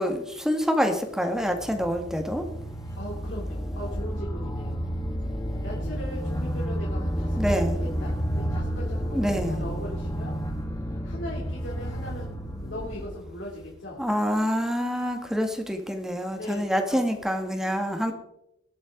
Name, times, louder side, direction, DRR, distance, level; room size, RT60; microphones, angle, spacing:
voice 1, 0.0-2.5 7.4-7.8 9.1-9.6 14.0-18.1, equal, 5° right, 5 dB, 1.6 m, -26 dB
sound 1, 1.2-14.0, equal, 20° left, 1.5 m, -31 dB
voice 2, 3.0-4.8 5.6-10.4 10.9-12.4 12.6-14.0 16.3-17.1 18.0-18.1, left 1 dB, 80° left, -4 dB, 3.0 m, -39 dB
sound 2, 3.6-13.0, equal, 45° left, 2.7 m, -41 dB
20.0 x 7.7 x 3.8 m, 0.82 s
head